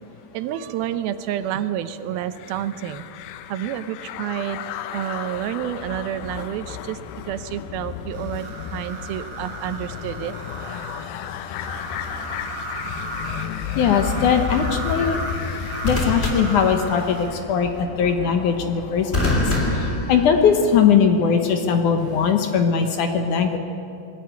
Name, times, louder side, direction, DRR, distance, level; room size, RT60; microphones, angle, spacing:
voice 1, 0.3-3.1 3.5-4.7 4.9-7.0 7.2-10.3, right 11 dB, 80° right, 11 dB, 2.6 m, -29 dB
sound 1, 2.3-19.4, left 9 dB, 85° left, 2.6 m, -33 dB
sound 2, 8.1-17.3, right 3 dB, 45° right, 3.7 m, -35 dB
sound 3, 12.0-12.3 15.8-17.3 19.1-20.8 22.0-22.3, left 1 dB, 15° left, 3.2 m, -26 dB
voice 2, 13.8-15.2 15.8-17.7 18.0-19.4 20.1-23.6, left 6 dB, 65° left, 6 dB, 2.3 m, -20 dB
21.0 x 14.0 x 9.5 m, 2.6 s
omnidirectional pair, 4.3 m